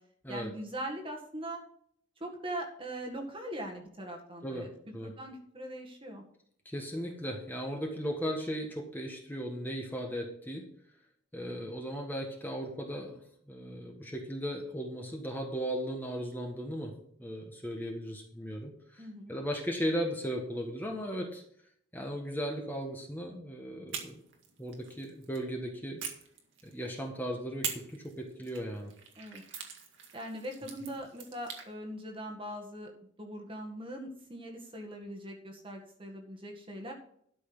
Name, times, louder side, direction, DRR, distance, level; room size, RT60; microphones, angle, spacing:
voice 1, 0.3-1.6 2.2-4.7 5.0-6.2 19.0-19.4 29.2-29.4 30.1-32.9 33.2-36.9, right 1 dB, 25° right, 1 dB, 1.8 m, -41 dB
voice 2, 6.6-10.6 11.3-13.2 13.5-16.9 17.2-21.4 21.9-24.2 24.6-26.0 26.6-28.9, equal, 10° left, 0 dB, 1.5 m, -37 dB
sound 1, 23.9-25.4 26.0-27.0 27.6-31.7, right 7 dB, 70° right, 2.0 m, -43 dB
12.5 x 6.2 x 6.2 m, 0.65 s
head